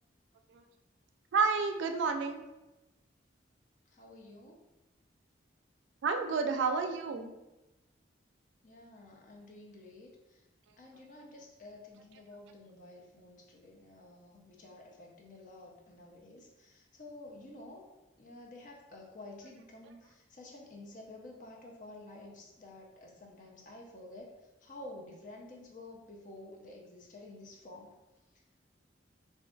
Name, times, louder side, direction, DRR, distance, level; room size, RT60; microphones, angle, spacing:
voice 1, 1.3-2.4 6.0-7.3, right 4 dB, 80° right, 6 dB, 0.3 m, -30 dB
voice 2, 3.9-4.6 8.6-10.5 10.8-17.8 18.2-27.9, left 2 dB, 45° left, 0 dB, 0.5 m, -51 dB
2.5 x 2.3 x 3.7 m, 1.0 s
head